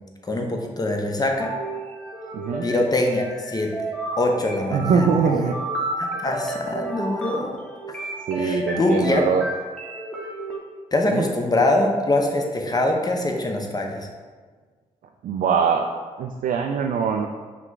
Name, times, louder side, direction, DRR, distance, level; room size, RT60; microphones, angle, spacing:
voice 1, 0.2-1.5 2.6-3.7 4.2-5.1 5.3-5.5 6.0-7.5 7.9-8.1 8.4-9.2 10.9-14.1, left 2 dB, 25° left, 2 dB, 0.9 m, -23 dB
sound 1, 1.4-10.6, right 1 dB, 5° left, 1.1 m, -32 dB
voice 2, 2.3-2.7 4.7-5.6 8.3-9.4 11.1-11.3 15.2-15.8 16.2-17.3, right 6 dB, 55° right, 2 dB, 0.4 m, -22 dB
5.7 x 2.3 x 3.8 m, 1.5 s
hypercardioid pair, 40°, 16 cm